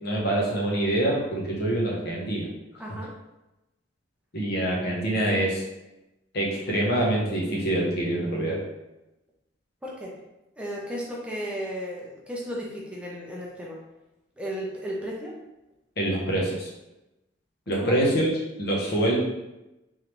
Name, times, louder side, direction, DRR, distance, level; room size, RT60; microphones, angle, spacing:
voice 1, 0.0-2.5 4.3-5.6 6.3-8.6 16.0-16.7 17.7-18.3 18.6-19.2, right 1 dB, 55° left, -2 dB, 0.9 m, -25 dB
voice 2, 2.8-3.1 9.8-10.2 10.6-13.8 14.4-15.3 17.7-18.0, equal, 5° right, -4 dB, 0.6 m, -34 dB
3.7 x 3.2 x 3.0 m, 0.95 s
head